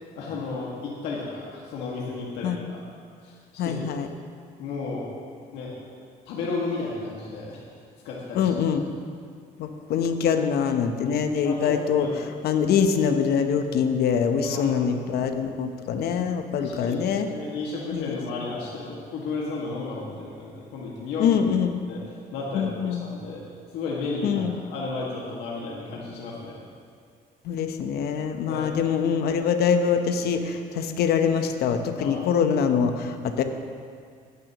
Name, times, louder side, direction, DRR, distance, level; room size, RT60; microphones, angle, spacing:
voice 1, 0.0-2.8 3.2-3.8 4.6-5.1 5.5-5.8 6.3-7.6 8.0-8.5 11.4-12.2 14.4-15.0 16.6-21.3 21.9-22.0 22.3-23.4 23.7-26.6 28.5-28.8 32.0-32.2, left 3 dB, 90° left, -4 dB, 1.9 m, -33 dB
voice 2, 3.6-4.1 8.3-8.8 9.6-12.1 12.4-17.3 17.9-18.1 21.2-21.7 22.5-23.0 24.2-24.5 27.4-33.4, left 7 dB, 70° left, 7 dB, 0.9 m, -24 dB
15.5 x 10.5 x 3.0 m, 2.1 s
cardioid pair, 110°, 17 cm